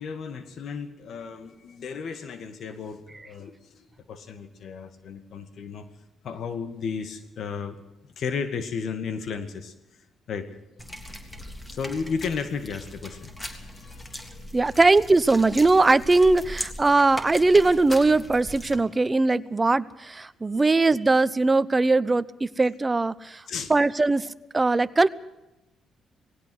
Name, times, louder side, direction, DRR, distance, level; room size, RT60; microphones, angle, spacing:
voice 1, 0.0-5.9 6.2-7.8 8.2-10.0 10.3-10.5 11.7-14.5 20.4-20.8 23.5-23.7, left 5 dB, 65° left, 10 dB, 1.9 m, -34 dB
sound 1, 10.8-18.8, left 1 dB, 15° left, 3.4 m, -39 dB
voice 2, 14.5-23.4 23.7-25.1, right 3 dB, 20° right, 16 dB, 0.9 m, -20 dB
19.5 x 17.0 x 7.9 m, 0.94 s
cardioid pair, 90°, 0 cm